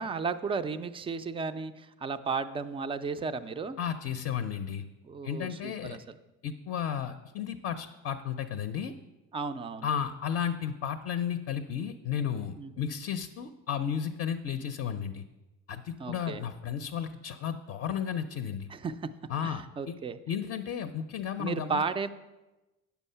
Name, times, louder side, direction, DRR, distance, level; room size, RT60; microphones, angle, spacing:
voice 1, 0.0-3.8 5.0-6.0 9.3-9.9 12.6-12.9 16.0-16.4 18.7-19.1 19.4-20.2 21.4-22.1, right 5 dB, 15° right, 11 dB, 0.3 m, -34 dB
voice 2, 3.8-4.8 5.2-6.0 6.4-8.9 9.8-15.2 15.7-18.7 19.3-19.9 20.3-21.8, left 8 dB, 40° left, 8 dB, 0.5 m, -33 dB
9.2 x 7.0 x 5.5 m, 1.1 s
cardioid pair, 135°, 33 cm